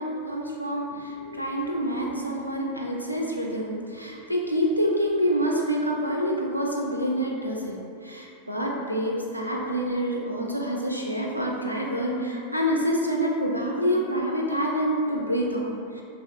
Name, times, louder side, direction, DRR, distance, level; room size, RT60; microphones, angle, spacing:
voice 1, 0.0-7.8 8.0-16.0, equal, 90° right, -2 dB, 0.4 m, -27 dB
3.2 x 2.3 x 2.4 m, 2.5 s
figure-of-eight pair, 90°, 0 cm